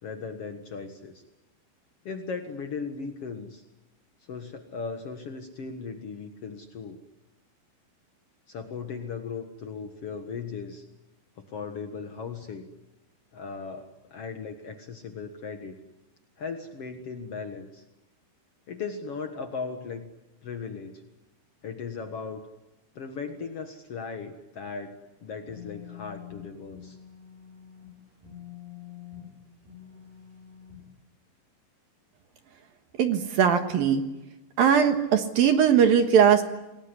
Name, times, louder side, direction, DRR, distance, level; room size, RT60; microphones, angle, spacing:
voice 1, 0.0-1.2 2.0-3.6 4.2-7.0 8.5-10.8 11.4-12.7 13.3-15.8 16.4-17.8 18.7-20.1 20.4-21.0 21.6-22.4 22.9-27.0, left 5 dB, 85° left, 5 dB, 1.3 m, -37 dB
sound 1, 25.2-31.0, left 10 dB, 45° right, 8.4 m, -46 dB
voice 2, 33.0-34.0 34.6-36.4, right 8 dB, 65° right, 7 dB, 2.8 m, -20 dB
28.5 x 20.0 x 9.9 m, 1.0 s
omnidirectional pair, 5.4 m